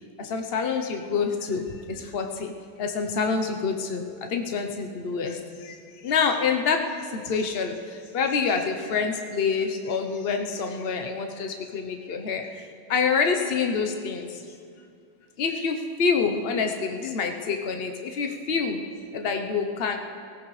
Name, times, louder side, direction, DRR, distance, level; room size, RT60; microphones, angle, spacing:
voice 1, 0.2-2.5 2.8-14.4 15.4-18.9 19.1-20.0, left 5 dB, 70° left, 4 dB, 0.5 m, -27 dB
19.0 x 17.0 x 3.2 m, 2.2 s
omnidirectional pair, 2.2 m